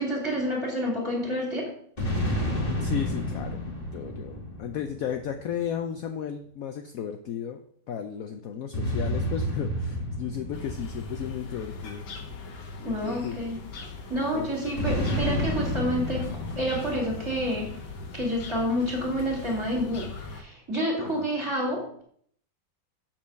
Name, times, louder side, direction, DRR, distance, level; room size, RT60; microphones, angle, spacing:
voice 1, 0.0-1.7 12.9-13.6 14.1-17.7 18.1-22.0, equal, 15° right, -3 dB, 2.6 m, -29 dB
sound 1, 2.0-5.6 8.7-12.4 14.8-18.2, left 1 dB, 20° left, 1.7 m, -31 dB
voice 2, 2.8-3.6 3.9-12.0 12.8-13.4 14.3-14.5 21.0-21.3, left 8 dB, 70° left, 6 dB, 0.8 m, -34 dB
sound 2, 10.5-20.4, left 4 dB, 90° left, 1.9 m, -41 dB
7.4 x 4.6 x 6.3 m, 0.62 s
omnidirectional pair, 2.0 m